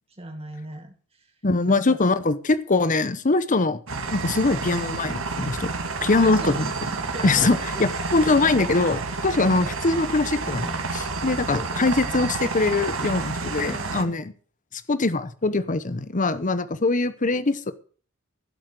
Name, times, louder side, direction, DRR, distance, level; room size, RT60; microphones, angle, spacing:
voice 1, 0.1-1.3 1.7-2.0 6.2-6.7 7.1-7.7 9.3-9.6 11.5-12.0 13.4-14.3, right 1 dB, 30° right, 4 dB, 1.7 m, -38 dB
voice 2, 1.4-3.8 4.1-5.7 6.0-6.7 7.2-14.3 14.7-17.7, left 3 dB, 40° left, 13 dB, 0.9 m, -22 dB
sound 1, 3.9-14.0, right 3 dB, 65° right, 2.5 m, -30 dB
16.5 x 7.9 x 6.5 m, 0.42 s
head